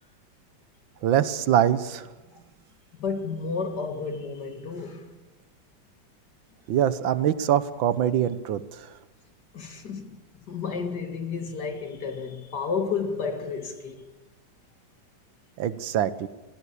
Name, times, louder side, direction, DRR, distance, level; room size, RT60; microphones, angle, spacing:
voice 1, 1.0-2.1 6.7-8.9 15.6-16.3, right 10 dB, 85° right, 1.7 m, -24 dB
voice 2, 3.0-5.1 9.5-10.2 10.5-14.0, left 5 dB, 60° left, 2.5 m, -31 dB
20.5 x 16.0 x 8.4 m
omnidirectional pair, 2.0 m